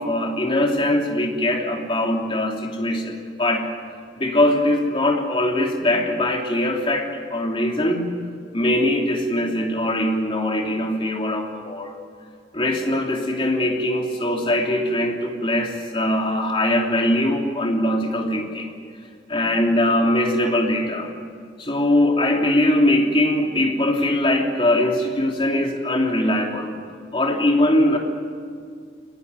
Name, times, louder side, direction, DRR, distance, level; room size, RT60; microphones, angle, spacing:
voice 1, 0.0-3.7 4.2-8.1 8.5-12.0 12.5-18.7 19.3-21.1 21.6-26.7 27.1-28.0, left 1 dB, 30° left, 1 dB, 3.0 m, -21 dB
25.0 x 19.0 x 9.6 m, 2.1 s
head